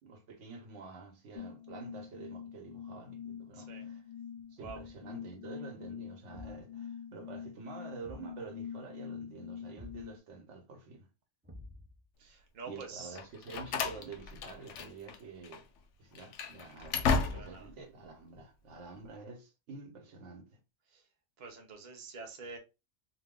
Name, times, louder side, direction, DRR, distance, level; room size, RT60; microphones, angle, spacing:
voice 1, 0.0-4.1 4.5-11.1 12.7-15.7 16.0-20.6, right 4 dB, 85° right, 1.2 m, -48 dB
sound 1, 1.3-10.2, left 8 dB, 60° left, 0.4 m, -45 dB
voice 2, 3.5-3.9 4.6-4.8 12.2-13.2 17.3-17.7 20.9-21.0 21.4-22.6, right 4 dB, 45° right, 0.8 m, -46 dB
Thump thud, 4.6-5.0 6.3-6.7 8.0-8.4 9.7-10.1 11.4-12.0, left 1 dB, 20° right, 0.3 m, -50 dB
Slam, 13.1-15.2 15.4-15.6 16.1-17.7, left 5 dB, 90° left, 0.9 m, -34 dB
2.7 x 2.1 x 3.6 m
omnidirectional pair, 1.2 m